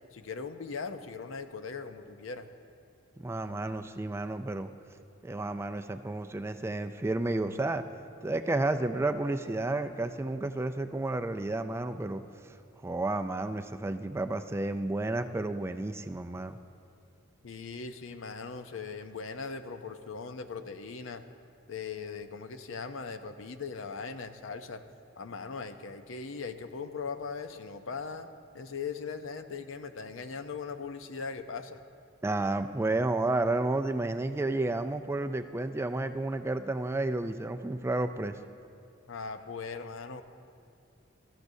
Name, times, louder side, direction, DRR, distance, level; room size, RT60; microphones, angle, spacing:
voice 1, 0.1-2.5 17.4-21.2 21.7-24.8 25.2-28.3 28.5-31.8 39.1-40.2, left 5 dB, 75° left, 9 dB, 0.6 m, -39 dB
voice 2, 3.2-4.7 5.2-7.9 8.2-12.6 12.8-16.6 32.2-38.4, right 2 dB, 15° right, 8 dB, 0.3 m, -31 dB
18.0 x 13.5 x 2.7 m, 2.5 s
head